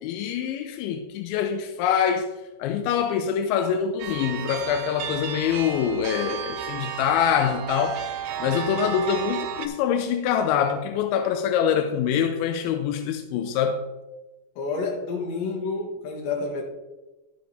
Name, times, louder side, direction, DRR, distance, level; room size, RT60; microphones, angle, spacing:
voice 1, 0.0-2.3 2.6-8.0 8.4-13.8, left 8 dB, 90° left, 2.9 m, -25 dB
sound 1, 4.0-9.7, right 8 dB, 90° right, 2.0 m, -33 dB
voice 2, 14.6-16.6, left 4 dB, 70° left, 3.7 m, -29 dB
11.5 x 7.7 x 3.3 m
omnidirectional pair, 5.2 m